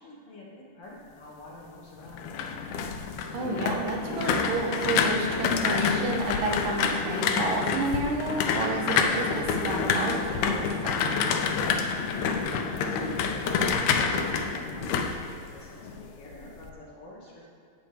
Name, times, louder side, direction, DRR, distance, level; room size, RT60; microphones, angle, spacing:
voice 1, 0.0-2.5 11.9-17.5, left 1 dB, 55° left, -5 dB, 1.9 m, -46 dB
rolling office chair, 2.0-16.0 16.3-16.7, left 5 dB, 80° left, 1.5 m, -28 dB
voice 2, 3.3-11.3, right 3 dB, 90° right, 1 dB, 2.7 m, -31 dB
12.5 x 8.1 x 3.2 m, 2.5 s
omnidirectional pair, 3.8 m